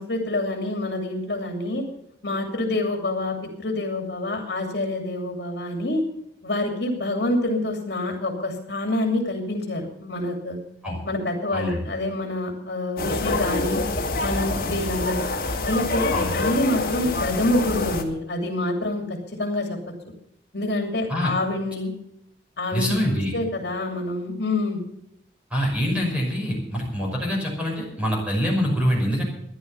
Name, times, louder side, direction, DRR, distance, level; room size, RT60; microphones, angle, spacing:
voice 1, 0.0-1.8 2.2-3.3 3.6-6.0 6.4-10.6 11.0-13.8 14.2-15.2 15.6-19.0 19.4-19.7 20.5-21.9 22.6-24.8, left 1 dB, 70° left, 2 dB, 2.9 m, -26 dB
voice 2, 11.5-11.8 14.6-14.8 16.1-16.4 21.1-21.3 22.7-23.3 25.5-29.2, equal, 5° right, -2 dB, 5.8 m, -25 dB
sound 1, 13.0-18.0, left 3 dB, 55° left, 2.1 m, -26 dB
14.0 x 11.0 x 7.0 m, 0.75 s
head